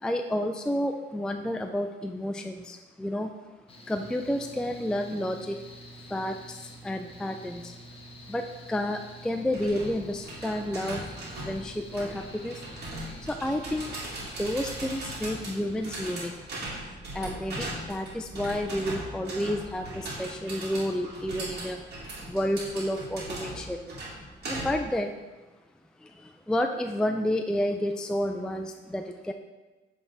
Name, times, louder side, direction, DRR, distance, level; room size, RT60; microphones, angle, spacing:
voice 1, 0.0-3.3 3.9-5.6 6.1-7.8 8.3-11.0 11.4-12.7 13.2-16.3 17.1-21.8 22.3-23.8 24.4-25.1 26.0-29.3, left 1 dB, 5° left, 5 dB, 0.3 m, -30 dB
Mechanical fan, 3.7-16.2, right 1 dB, 30° left, 1.0 m, -48 dB
sound 1, 9.5-24.9, right 1 dB, 55° right, 2.0 m, -39 dB
7.7 x 3.6 x 4.0 m, 1.2 s
cardioid pair, 90°, 20 cm